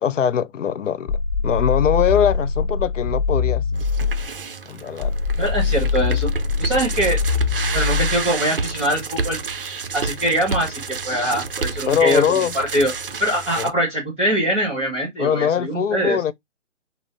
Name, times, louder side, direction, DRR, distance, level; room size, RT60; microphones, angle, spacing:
voice 1, 0.0-3.8 4.7-5.1 11.9-12.5 13.6-13.7 15.2-16.3, left 8 dB, 75° left, 0.5 m, -22 dB
sound 1, 1.1-4.3 5.0-8.3, left 5 dB, 30° left, 1.4 m, -23 dB
sound 2, 3.7-13.7, right 4 dB, 45° right, 0.5 m, -30 dB
voice 2, 5.4-6.3 6.6-7.2 7.7-9.4 9.9-12.9 13.2-16.2, right 1 dB, 5° right, 0.8 m, -23 dB
5.4 x 2.0 x 2.6 m
hypercardioid pair, 170°, 38 cm